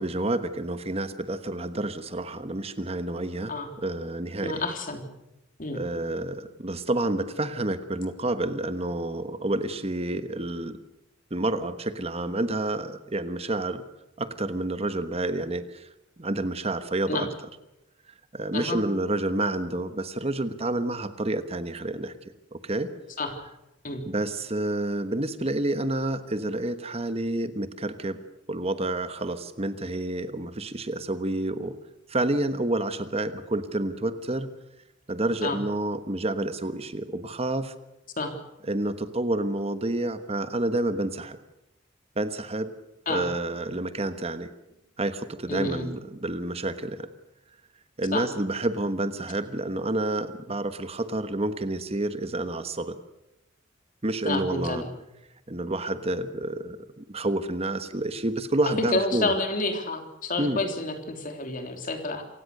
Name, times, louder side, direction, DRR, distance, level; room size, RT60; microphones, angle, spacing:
voice 1, 0.0-4.6 5.7-10.8 11.3-13.8 14.2-15.9 16.2-17.3 18.3-22.1 22.5-22.9 24.0-28.2 28.5-31.8 32.1-34.5 35.1-37.7 38.6-41.4 42.2-42.7 43.1-44.5 45.0-47.1 48.0-53.0 54.0-54.8 55.5-59.3 60.4-60.6, right 2 dB, 30° right, 11 dB, 1.2 m, -29 dB
voice 2, 4.4-5.0 5.6-5.8 17.1-17.3 18.5-18.8 23.2-23.3 23.8-24.0 35.4-35.6 38.2-38.3 43.1-43.3 45.5-45.9 48.1-48.2 54.3-54.9 58.8-62.2, left 2 dB, 45° left, 6 dB, 3.4 m, -29 dB
27.5 x 16.5 x 6.7 m, 0.92 s
head